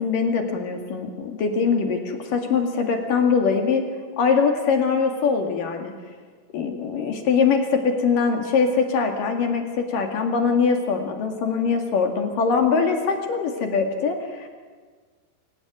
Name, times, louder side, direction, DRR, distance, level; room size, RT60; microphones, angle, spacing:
voice 1, 0.0-3.8 4.2-5.9 6.5-14.5, left 5 dB, 55° left, 4 dB, 3.4 m, -22 dB
25.5 x 18.0 x 9.4 m, 1.5 s
omnidirectional pair, 5.0 m